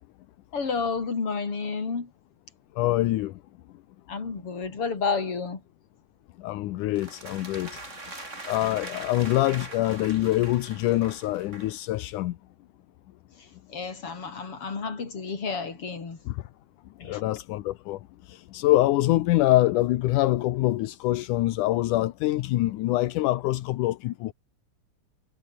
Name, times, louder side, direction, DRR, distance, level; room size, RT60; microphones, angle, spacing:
voice 1, 0.5-2.1 4.1-5.6 13.7-16.2 17.0-17.2, left 5 dB, 45° left, 4.9 m, -30 dB
voice 2, 2.8-3.3 6.4-7.7 8.5-12.3 16.3-16.4 17.1-18.0 18.5-24.3, left 16 dB, 80° left, 2.4 m, -24 dB
sound 1, 7.0-11.8, right 2 dB, 20° right, 4.4 m, -42 dB
omnidirectional pair, 3.6 m